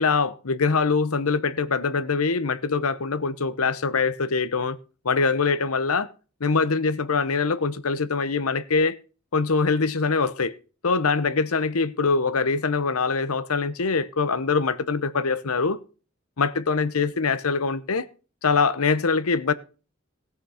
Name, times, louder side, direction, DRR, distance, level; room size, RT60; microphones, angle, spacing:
voice 1, 0.0-4.8 5.0-6.1 6.4-9.0 9.3-10.5 10.8-15.8 16.4-18.1 18.4-19.5, left 4 dB, 85° left, 0.9 m, -23 dB
17.0 x 6.1 x 5.6 m
head